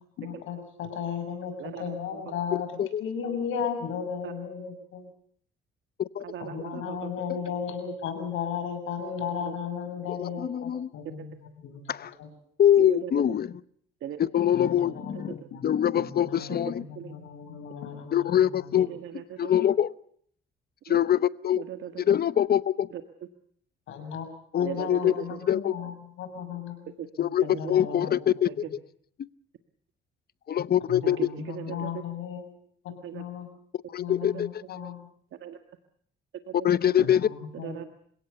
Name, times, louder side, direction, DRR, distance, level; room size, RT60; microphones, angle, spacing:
voice 1, 0.2-5.1 6.4-11.8 12.2-12.3 14.5-15.6 15.9-18.9 23.9-24.3 24.5-26.9 27.2-28.1 30.9-32.5 32.8-33.5 34.0-35.1 37.0-37.8, left 7 dB, 85° left, 6.7 m, -35 dB
voice 2, 1.6-2.2 4.2-4.3 6.2-7.1 9.5-9.6 12.8-13.4 14.0-14.2 15.3-15.4 16.5-16.6 17.0-17.1 18.7-19.5 20.9-21.0 21.6-22.0 22.9-23.0 24.6-25.4 27.0-27.1 27.4-27.7 28.4-28.5 31.0-32.0 33.0-33.2 34.2-34.4 35.4-35.6 36.5-36.6 37.5-37.9, right 10 dB, 75° right, 1.7 m, -38 dB
voice 3, 10.1-10.9 11.9-12.1 12.6-13.5 14.2-16.8 18.1-18.9 19.4-19.9 20.9-21.6 22.1-22.9 24.5-25.1 25.5-25.7 27.2-28.6 29.2-29.3 30.5-31.2 33.9-34.5 36.6-37.3, left 10 dB, 50° left, 0.9 m, -24 dB
29.5 x 17.5 x 6.8 m
cardioid pair, 90°, 20 cm